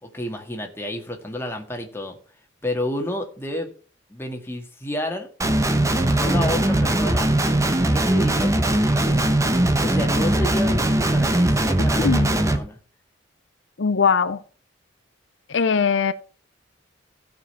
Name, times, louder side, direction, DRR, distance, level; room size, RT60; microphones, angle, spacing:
voice 1, 0.0-2.2 2.6-3.7 4.1-5.3 6.1-7.3 7.9-9.4 9.8-12.8, left 1 dB, 15° left, 1.8 m, -30 dB
Guitar, 5.4-12.6, right 1 dB, 15° right, 1.0 m, -20 dB
voice 2, 13.8-14.4 15.5-16.1, left 5 dB, 75° left, 0.6 m, -20 dB
15.5 x 5.3 x 5.4 m
head